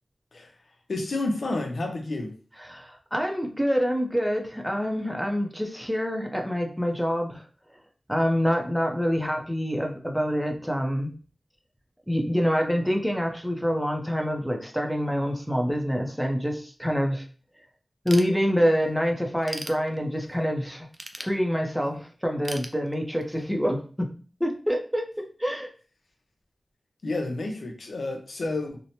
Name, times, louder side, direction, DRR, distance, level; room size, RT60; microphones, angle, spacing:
voice 1, 0.9-2.3 27.0-28.8, left 2 dB, 75° left, 3 dB, 0.6 m, -30 dB
voice 2, 2.7-7.5 8.1-11.1 12.1-17.2 18.0-20.9 21.2-24.1 24.4-25.7, equal, ahead, 3 dB, 0.6 m, -26 dB
Ratchet pawl / Tools, 18.1-18.9 19.2-20.4 20.9-21.9 22.4-23.4, right 1 dB, 40° right, 0.4 m, -39 dB
2.7 x 2.2 x 2.8 m, 0.38 s
wide cardioid pair, 60°, 0 cm